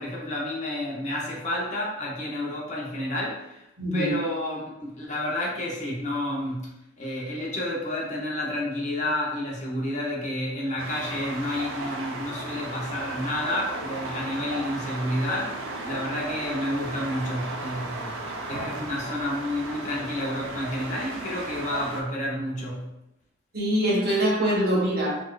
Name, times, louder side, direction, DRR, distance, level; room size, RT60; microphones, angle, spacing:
voice 1, 0.0-3.6 3.9-6.7 7.0-22.9, left 1 dB, 35° left, -3 dB, 0.7 m, -30 dB
voice 2, 3.8-4.1 23.5-25.2, equal, 50° right, -5 dB, 1.0 m, -23 dB
sound 1, 10.8-22.0, right 2 dB, 80° right, 0.5 m, -35 dB
4.1 x 2.4 x 2.3 m, 0.89 s
head